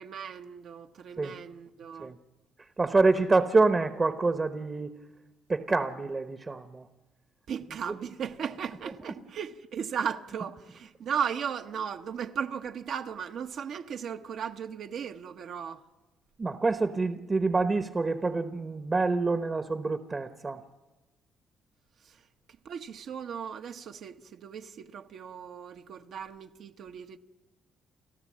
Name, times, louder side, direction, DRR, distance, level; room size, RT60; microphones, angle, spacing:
voice 1, 0.0-2.1 7.5-15.8 22.0-22.2 22.6-27.2, right 7 dB, 70° right, 1.0 m, -36 dB
voice 2, 2.8-4.9 5.5-6.9 16.4-20.6, right 3 dB, 30° right, 0.9 m, -26 dB
29.5 x 13.0 x 7.5 m
cardioid pair, 90°, 0 cm